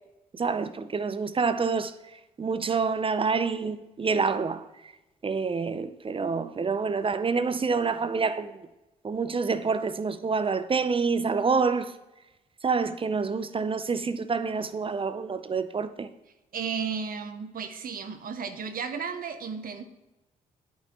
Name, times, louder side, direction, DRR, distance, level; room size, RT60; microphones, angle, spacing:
voice 1, 0.3-1.9 2.4-4.9 5.2-8.7 9.0-11.9 12.6-16.1, right 5 dB, 30° right, 0.5 m, -27 dB
voice 2, 16.5-19.8, right 6 dB, 50° right, 0.9 m, -34 dB
11.0 x 5.5 x 2.9 m
hypercardioid pair, 45°, 18 cm